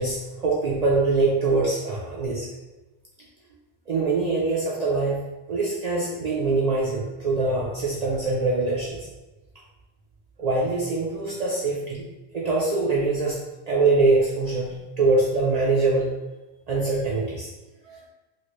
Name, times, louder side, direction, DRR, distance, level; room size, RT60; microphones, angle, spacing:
voice 1, 0.0-2.5 3.9-5.2 5.5-9.0 10.4-12.0 12.3-13.4 13.7-16.1 16.7-17.5 17.9-18.0, right 3 dB, 60° right, -5 dB, 0.4 m, -23 dB
3.0 x 2.5 x 3.0 m, 1.1 s
omnidirectional pair, 1.2 m